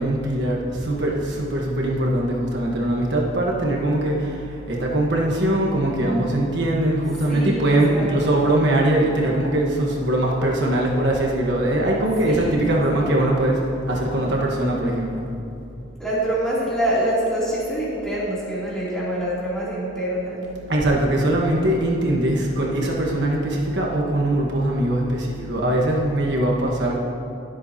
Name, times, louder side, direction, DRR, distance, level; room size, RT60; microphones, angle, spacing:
voice 1, 0.0-15.2 20.7-26.9, right 1 dB, 65° right, -1 dB, 1.3 m, -21 dB
voice 2, 7.3-8.5 12.2-13.1 16.0-20.4, right 1 dB, 5° left, -9 dB, 2.9 m, -26 dB
21.0 x 7.8 x 2.8 m, 2.6 s
head